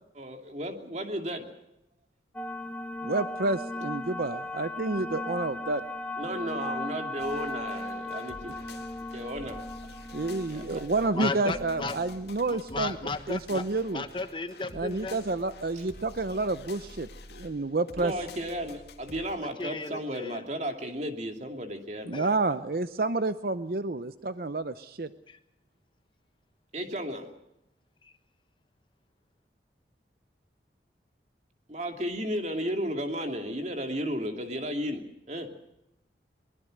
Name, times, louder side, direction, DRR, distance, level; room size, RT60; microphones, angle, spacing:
voice 1, 0.2-1.4 6.2-8.6 9.1-9.6 10.5-10.8 18.0-22.1 26.7-27.3 31.7-35.0 35.3-35.5, equal, 40° right, 4 dB, 2.8 m, -34 dB
sound 1, 2.3-13.2, left 2 dB, 10° left, 1.3 m, -38 dB
voice 2, 3.0-5.8 10.1-13.0 13.3-14.0 14.7-18.1 22.0-25.1, right 3 dB, 55° right, 12 dB, 0.7 m, -29 dB
sound 2, 7.2-19.4, left 2 dB, 70° left, 2.2 m, -49 dB
voice 3, 11.1-11.9 12.5-13.6 13.9-15.2 19.6-20.4 22.1-22.3, left 3 dB, 30° left, 9 dB, 1.2 m, -34 dB
23.0 x 21.0 x 6.5 m, 0.84 s
head